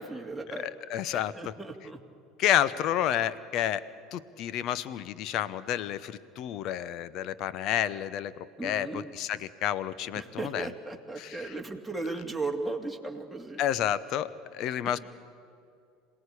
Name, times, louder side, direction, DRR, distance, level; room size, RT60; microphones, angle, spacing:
voice 1, 0.0-0.7 1.1-2.0 8.6-9.1 10.1-13.6 14.8-15.0, right 3 dB, ahead, 0 dB, 2.6 m, -36 dB
voice 2, 0.6-1.5 2.4-3.8 4.1-10.7 11.2-11.5 13.6-15.0, left 11 dB, 55° left, 16 dB, 0.9 m, -30 dB
27.0 x 18.0 x 8.5 m, 2.4 s
hypercardioid pair, 75°, 0 cm